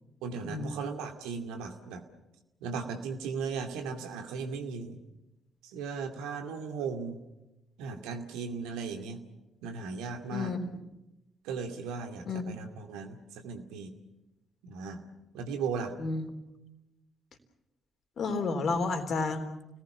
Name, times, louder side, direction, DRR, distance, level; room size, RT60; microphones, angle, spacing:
voice 1, 0.2-2.0 2.6-5.0 5.6-7.2 7.8-9.2 9.6-10.5 11.4-13.9 14.6-15.0 15.3-15.9, right 5 dB, 70° right, 5 dB, 2.4 m, -37 dB
voice 2, 18.2-19.4, left 4 dB, 50° left, 7 dB, 3.5 m, -31 dB
30.0 x 19.5 x 7.1 m, 0.96 s
figure-of-eight pair, 40°, 0 cm